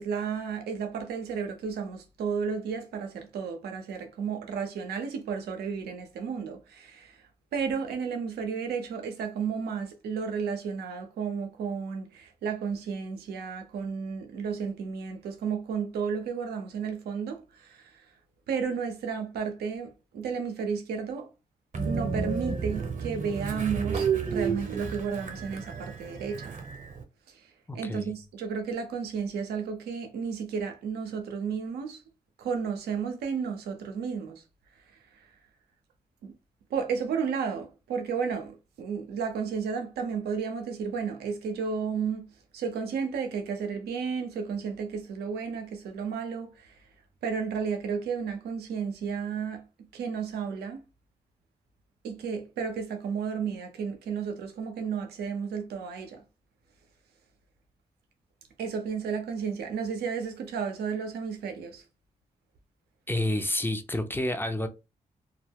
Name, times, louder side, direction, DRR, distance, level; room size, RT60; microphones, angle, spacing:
voice 1, 0.0-18.1 18.5-21.3 21.8-26.5 27.3-27.5 27.7-32.0 32.4-34.4 35.2-35.3 36.2-36.3 36.7-42.3 42.5-46.8 47.2-49.6 49.9-50.8 52.0-56.2 58.6-61.8, right 6 dB, 85° right, 0.6 m, -33 dB
Train, 21.7-27.0, right 5 dB, 50° right, 0.8 m, -31 dB
voice 2, 27.7-28.1 63.1-64.7, left 1 dB, 15° left, 0.6 m, -29 dB
2.3 x 2.1 x 3.4 m
supercardioid pair, 40°, 16 cm